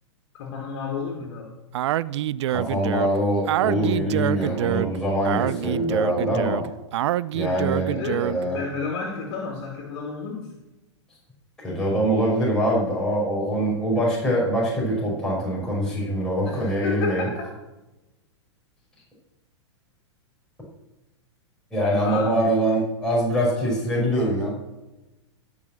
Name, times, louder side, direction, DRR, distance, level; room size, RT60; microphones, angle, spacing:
voice 1, 0.3-1.5 7.9-10.5 16.4-17.5 22.0-22.3, left 5 dB, 60° left, -1 dB, 2.4 m, -31 dB
Speech, 1.7-8.5, right 13 dB, 70° right, 0.4 m, -26 dB
voice 2, 2.5-6.6 7.3-8.6 11.6-17.3 21.7-24.5, right 1 dB, 5° left, -7 dB, 5.3 m, -24 dB
13.5 x 6.0 x 7.5 m, 1.0 s
hypercardioid pair, 125°, 15 cm